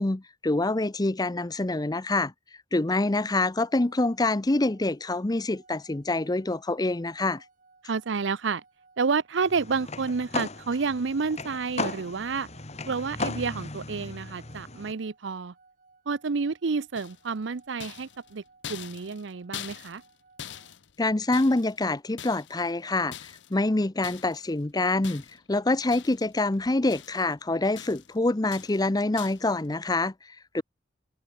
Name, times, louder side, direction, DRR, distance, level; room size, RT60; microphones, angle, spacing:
voice 1, 0.0-2.3 2.7-7.4 21.0-23.1 23.5-25.2 25.5-30.1 30.5-30.6, left 2 dB, 20° left, 0.6 m, -26 dB
sound 1, 3.6-20.8, right 3 dB, 45° right, 5.2 m, -61 dB
voice 2, 7.8-8.6 9.0-12.5 12.9-15.5 16.1-18.4 18.7-20.0, right 4 dB, 75° right, 0.6 m, -29 dB
sound 2, 9.4-14.9, left 3 dB, 35° left, 1.9 m, -36 dB
sound 3, 17.0-17.4 17.8-20.1 20.4-21.8 22.2-22.7 23.1-23.6 24.0-24.5 25.0-25.5 25.9-26.4 26.6-27.3 27.8-28.2 28.5-28.9 29.2-29.5, left 9 dB, 70° left, 0.8 m, -43 dB
head